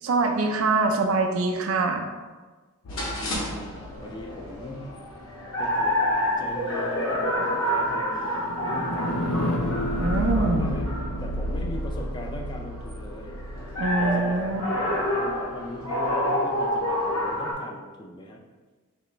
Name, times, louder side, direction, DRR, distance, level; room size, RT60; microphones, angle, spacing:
voice 1, 0.0-2.1 10.0-10.7 13.8-14.6, right 3 dB, 65° right, 4 dB, 0.4 m, -24 dB
sound 1, 2.8-5.0 6.8-14.9, left 1 dB, 85° left, 0.5 m, -32 dB
sound 2, 2.9-17.5, left 1 dB, 65° left, 1.0 m, -29 dB
voice 2, 2.9-4.9 5.6-6.0 6.4-9.7 10.4-13.4 14.0-14.6 15.0-18.4, left 1 dB, 20° left, 1 dB, 0.3 m, -40 dB
4.2 x 3.2 x 3.0 m, 1.3 s
head